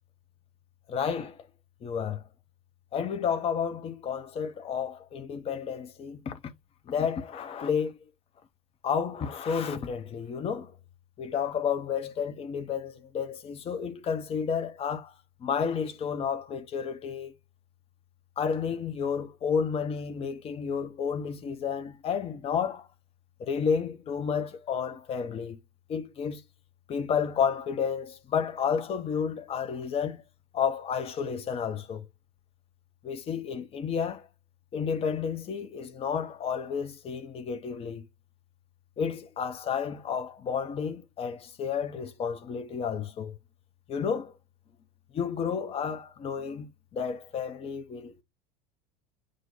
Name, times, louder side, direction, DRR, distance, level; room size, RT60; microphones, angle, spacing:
voice 1, 0.9-1.5 1.8-2.3 2.9-6.4 6.9-8.0 8.8-10.7 11.2-15.1 15.4-17.3 18.4-22.9 23.4-25.6 25.9-26.4 26.9-30.2 30.5-32.1 33.0-34.3 34.7-38.1 39.0-43.4 43.9-44.3 45.1-48.2, left 7 dB, 30° left, 0.7 m, -31 dB
6.2 x 2.2 x 3.9 m
figure-of-eight pair, 75°, 21 cm